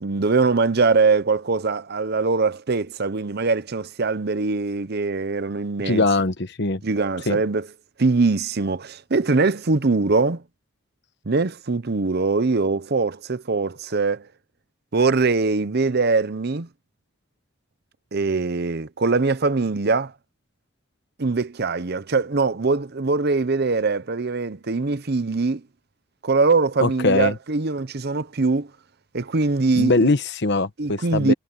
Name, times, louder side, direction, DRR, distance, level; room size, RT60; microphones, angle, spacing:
voice 1, 0.0-6.0 6.8-7.7 8.0-10.4 11.3-14.3 14.9-16.7 18.1-20.1 21.2-25.6 26.2-28.7 29.1-30.1 30.8-31.3, right 3 dB, 50° right, 0.8 m, -22 dB
voice 2, 5.8-6.8 7.3-7.4 26.8-27.3 29.7-31.3, left 3 dB, 55° left, 1.1 m, -21 dB
head